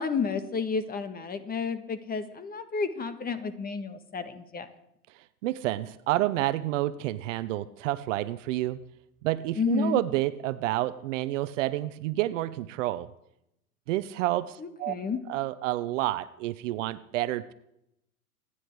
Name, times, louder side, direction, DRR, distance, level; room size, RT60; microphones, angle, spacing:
voice 1, 0.0-4.7 9.6-10.0 14.6-15.2, left 5 dB, 20° left, 11 dB, 1.6 m, -31 dB
voice 2, 5.4-8.8 9.2-13.1 13.9-14.9 15.3-17.5, right 15 dB, 55° right, 15 dB, 0.9 m, -29 dB
27.0 x 10.0 x 4.7 m, 0.80 s
hypercardioid pair, 100°, 45 cm